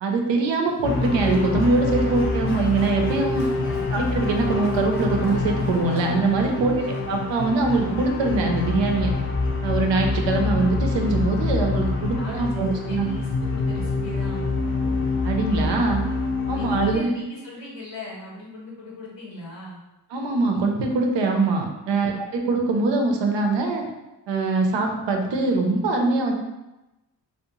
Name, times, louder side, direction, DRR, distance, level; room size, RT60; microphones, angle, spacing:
voice 1, 0.0-3.4 3.9-9.1 9.6-13.1 15.2-16.0 16.5-17.1 20.1-23.8 24.3-26.3, right 3 dB, 85° right, 2 dB, 0.6 m, -23 dB
Walk footsteps, 0.7-7.1, equal, 15° right, 0.8 m, -44 dB
sound 1, 0.8-17.0, left 3 dB, 30° left, 0.5 m, -26 dB
voice 2, 3.6-4.2 6.6-7.0 12.1-14.4 16.5-19.8 22.0-22.3, left 1 dB, 85° left, -3 dB, 0.9 m, -39 dB
2.6 x 2.0 x 2.9 m, 0.99 s
cardioid pair, 60°, 42 cm